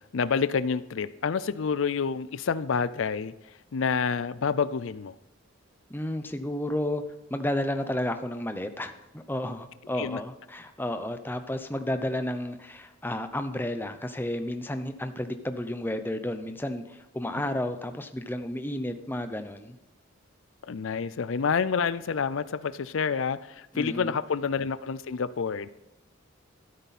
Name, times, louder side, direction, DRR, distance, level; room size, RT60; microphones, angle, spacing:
voice 1, 0.1-3.3 3.7-5.1 10.0-10.2 20.7-25.7, left 6 dB, 70° left, 16 dB, 0.5 m, -28 dB
voice 2, 5.9-7.0 7.3-19.8 23.7-24.1, left 1 dB, 10° left, 8 dB, 0.7 m, -32 dB
13.0 x 12.5 x 4.2 m, 0.96 s
head